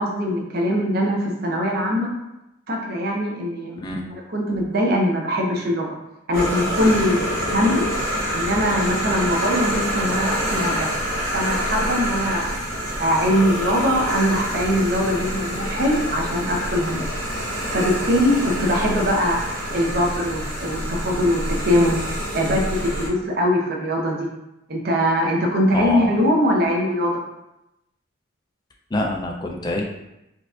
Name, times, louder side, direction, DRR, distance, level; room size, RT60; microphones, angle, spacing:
voice 1, 0.0-2.1 2.7-3.8 4.1-6.0 6.3-7.9 8.3-10.9 11.3-12.6 13.0-17.1 17.7-22.0 22.3-24.3 24.7-27.2, equal, 50° right, -1 dB, 0.6 m, -22 dB
sound 1, 6.3-23.1, equal, 80° right, 0.8 m, -26 dB
voice 2, 25.7-26.1 28.9-29.8, left 1 dB, 20° left, 1 dB, 0.3 m, -25 dB
4.4 x 2.4 x 2.4 m, 0.91 s
head